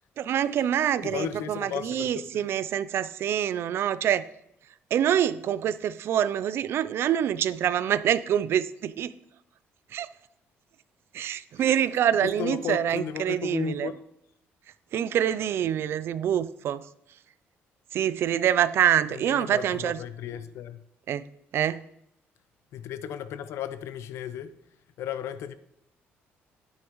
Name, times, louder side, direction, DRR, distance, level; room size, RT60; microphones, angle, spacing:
voice 1, 0.2-4.2 4.9-9.1 9.9-10.1 11.1-13.9 14.9-16.9 17.9-20.0 21.1-21.2 21.5-21.9, right 10 dB, 60° right, 0.4 m, -26 dB
voice 2, 1.0-2.5 11.6-11.7 12.2-14.0 19.1-20.8 22.7-24.6 25.0-25.5, left 9 dB, 75° left, 0.7 m, -35 dB
9.3 x 8.7 x 3.1 m
cardioid pair, 105°, 5 cm